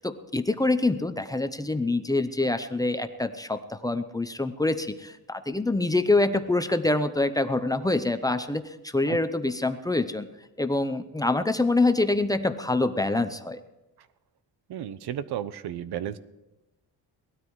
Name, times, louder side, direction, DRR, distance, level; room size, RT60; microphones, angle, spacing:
voice 1, 0.0-10.3 10.6-13.6, left 2 dB, 10° left, 9 dB, 0.6 m, -25 dB
voice 2, 14.7-16.2, right 10 dB, 80° right, 15 dB, 1.0 m, -33 dB
18.5 x 13.0 x 4.7 m, 1.0 s
cardioid pair, 170°, 38 cm